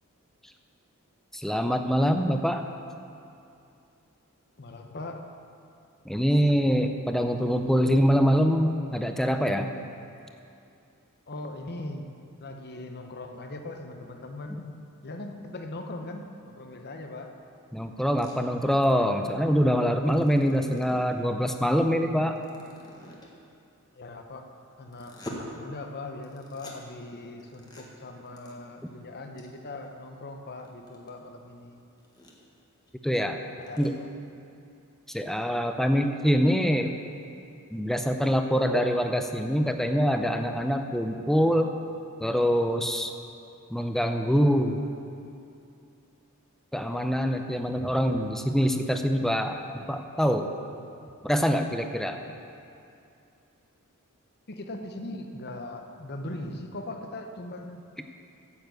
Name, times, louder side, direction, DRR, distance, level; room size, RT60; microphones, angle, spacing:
voice 1, 1.3-2.6 6.1-9.7 17.7-22.4 33.0-33.4 33.8-34.0 35.1-36.9 37.7-41.7 42.2-43.1 43.7-44.8 46.7-50.5 51.2-52.2, equal, ahead, 5 dB, 0.6 m, -24 dB
voice 2, 4.6-5.2 11.3-12.1 12.4-14.7 15.0-17.3 23.9-24.4 24.8-31.8 33.6-34.1 54.5-57.8, left 2 dB, 45° left, 4 dB, 0.9 m, -40 dB
sound 1, 18.2-18.4 20.0-21.2 22.3-23.4 24.9-25.4 26.2-26.8 27.4-27.8 28.3-28.5 28.9-29.0 29.4-29.5 29.8-29.9 30.5-31.1 31.6-31.7 32.0-32.4 32.9-33.0 33.2-33.3 33.5-33.9, left 1 dB, 20° left, 1.4 m, -45 dB
9.8 x 7.3 x 7.8 m, 2.6 s
head